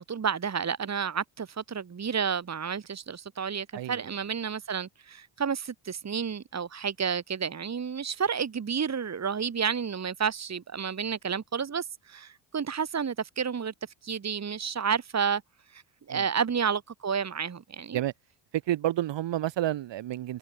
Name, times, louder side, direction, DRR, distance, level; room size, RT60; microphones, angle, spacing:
voice 1, 0.0-13.7 14.0-15.4 15.7-15.8 16.1-18.0, right 6 dB, 35° right, 2.8 m, -31 dB
voice 2, 3.7-4.1 16.1-16.3 17.9-18.1 18.5-20.4, right 13 dB, 65° right, 5.2 m, -30 dB
supercardioid pair, 70°, 46 cm